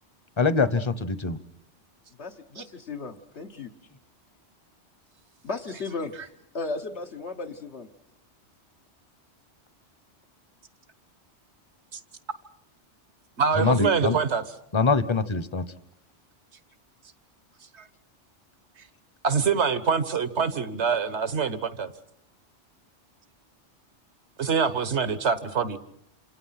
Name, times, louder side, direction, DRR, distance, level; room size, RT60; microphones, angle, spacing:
voice 1, 0.4-1.4 13.6-14.2 14.7-15.6, left 4 dB, 25° left, 15 dB, 1.0 m, -23 dB
voice 2, 2.2-3.7 5.4-7.9, left 3 dB, 70° left, 2 dB, 1.5 m, -35 dB
voice 3, 13.4-14.4 17.8-17.9 19.2-21.9 24.4-25.8, right 6 dB, 75° right, 13 dB, 1.6 m, -25 dB
27.5 x 26.5 x 5.8 m, 0.72 s
omnidirectional pair, 1.2 m